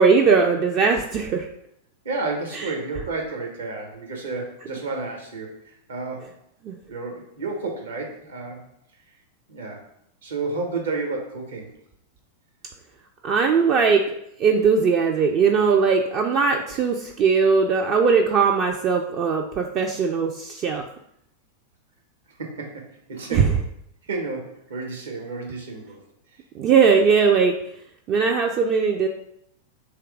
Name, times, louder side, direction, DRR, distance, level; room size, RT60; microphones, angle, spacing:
voice 1, 0.0-1.5 2.5-2.7 6.6-6.8 13.2-14.0 14.4-20.8 23.3-23.6 26.5-27.5 28.1-29.1, right 5 dB, 40° right, 2 dB, 0.4 m, -19 dB
voice 2, 2.0-6.3 6.9-8.6 9.5-9.8 10.2-11.7 22.4-23.5 24.1-26.0, right 3 dB, 70° right, 1 dB, 1.1 m, -31 dB
3.4 x 3.1 x 4.7 m, 0.75 s
figure-of-eight pair, 90°, 0 cm